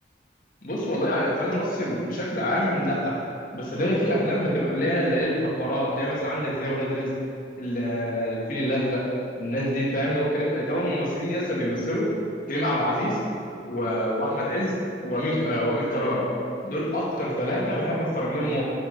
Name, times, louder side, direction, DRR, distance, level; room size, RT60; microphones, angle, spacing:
voice 1, 0.6-3.1 3.5-7.1 7.6-9.0 9.4-12.1 12.5-13.2 13.6-14.8 15.0-16.3 16.6-18.6, equal, 45° left, -5 dB, 1.9 m, -26 dB
8.8 x 6.2 x 5.3 m, 2.5 s
head